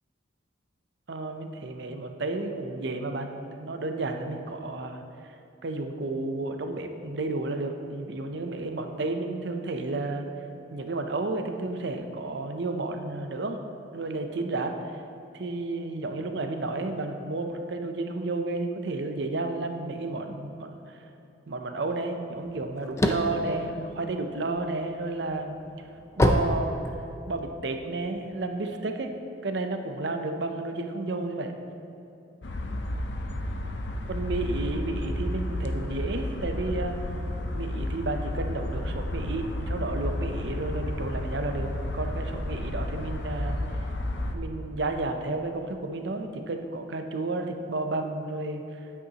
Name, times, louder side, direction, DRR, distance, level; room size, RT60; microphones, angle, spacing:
voice 1, 1.1-5.0 5.6-10.3 10.7-13.6 13.9-14.9 15.3-21.0 21.5-25.6 26.2-26.8 27.3-29.1 29.4-31.5 34.1-37.0 37.5-43.6 44.3-48.6, right 2 dB, 60° right, 5 dB, 0.6 m, -32 dB
sound 1, 22.5-24.7 25.2-27.4, equal, 15° left, 0.4 m, -25 dB
sound 2, 32.4-44.3, left 1 dB, 60° left, 0.6 m, -32 dB
9.3 x 8.3 x 2.9 m, 2.9 s
head